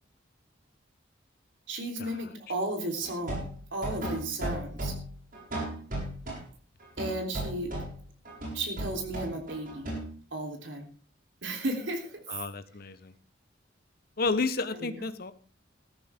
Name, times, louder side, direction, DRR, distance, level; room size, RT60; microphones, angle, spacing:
voice 1, 1.7-3.4 3.7-4.9 7.0-7.7 8.5-9.8 10.3-10.9 11.4-12.2 14.7-15.1, right 1 dB, 80° right, 3 dB, 3.5 m, -34 dB
sound 1, 3.0-6.4 6.8-10.1, right 1 dB, 50° right, 6.8 m, -35 dB
voice 2, 12.3-13.1 14.2-15.3, left 3 dB, 55° left, 12 dB, 1.0 m, -31 dB
15.0 x 13.0 x 3.6 m, 0.39 s
head